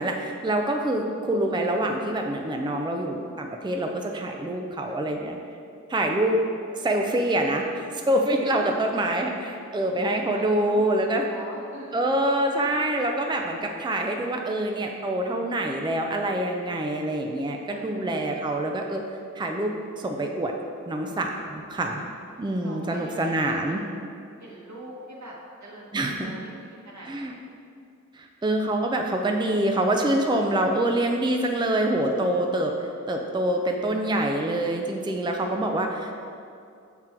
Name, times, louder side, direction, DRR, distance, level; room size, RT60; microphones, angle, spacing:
voice 1, 0.0-5.4 5.9-6.4 6.7-11.2 11.9-19.0 19.4-20.5 20.9-22.0 22.4-23.8 25.9-26.3 27.1-27.3 28.1-36.2, right 1 dB, 15° right, 2 dB, 0.4 m, -26 dB
voice 2, 8.4-8.8 10.1-10.8 11.2-12.0 17.7-17.9 22.1-23.8 24.4-27.4, right 1 dB, 70° right, -4 dB, 1.1 m, -44 dB
5.9 x 3.8 x 4.4 m, 2.4 s
wide cardioid pair, 50°, 29 cm